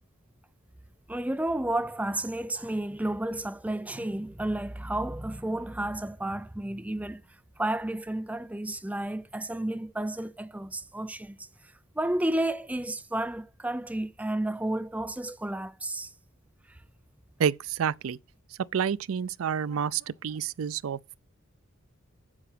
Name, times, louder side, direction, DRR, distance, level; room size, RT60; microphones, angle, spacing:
voice 1, 1.1-7.2 7.6-11.5 12.0-16.1, right 1 dB, 5° right, 0.4 m, -31 dB
voice 2, 17.4-18.2 18.7-21.0, right 7 dB, 80° right, 0.4 m, -29 dB
7.8 x 7.3 x 5.0 m
head